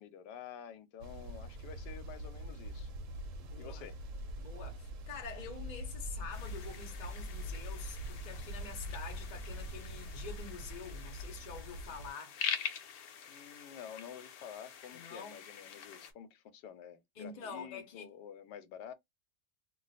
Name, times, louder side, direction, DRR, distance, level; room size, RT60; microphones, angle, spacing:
voice 1, 0.0-2.9 3.6-4.0 13.3-18.9, left 9 dB, 85° left, 1.2 m, -49 dB
sound 1, 1.0-12.1, equal, 65° right, 0.9 m, -43 dB
voice 2, 3.4-3.8 4.4-12.4 14.9-15.4 17.2-18.1, left 5 dB, 40° left, 0.7 m, -47 dB
sound 2, 6.3-16.1, left 8 dB, 70° left, 1.1 m, -45 dB
2.5 x 2.4 x 4.0 m
omnidirectional pair, 1.8 m